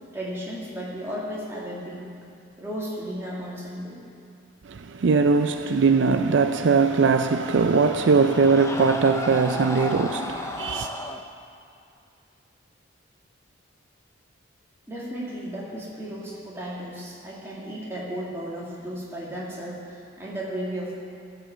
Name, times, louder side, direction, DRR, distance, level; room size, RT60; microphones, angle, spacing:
voice 1, 0.1-2.1 2.6-4.0 14.9-21.0, equal, 15° right, 2.4 m, -34 dB
voice 2, 4.7-10.9, right 4 dB, 65° right, 0.4 m, -20 dB
sound 1, 6.8-11.2, left 2 dB, 15° left, 0.5 m, -34 dB
15.0 x 5.6 x 7.4 m
head